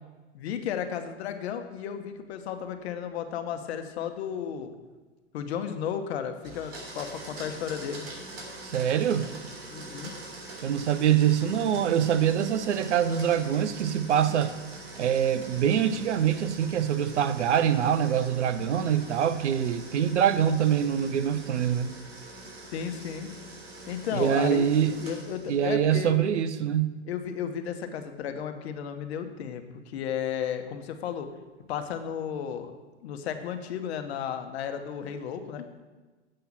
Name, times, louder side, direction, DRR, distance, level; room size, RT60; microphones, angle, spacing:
voice 1, 0.3-4.7 5.3-8.1 9.7-10.1 22.7-23.3 23.9-26.2 27.0-31.3 31.7-32.7 33.0-35.7, left 8 dB, 65° left, 8 dB, 1.1 m, -34 dB
Domestic sounds home sounds, 6.4-25.6, right 2 dB, 60° right, 3.2 m, -44 dB
voice 2, 8.6-9.3 10.6-14.5 15.0-21.9 24.1-24.9 25.5-27.0, right 9 dB, 80° right, 12 dB, 0.7 m, -24 dB
7.8 x 5.8 x 7.3 m, 1.3 s
hypercardioid pair, 110°, 35 cm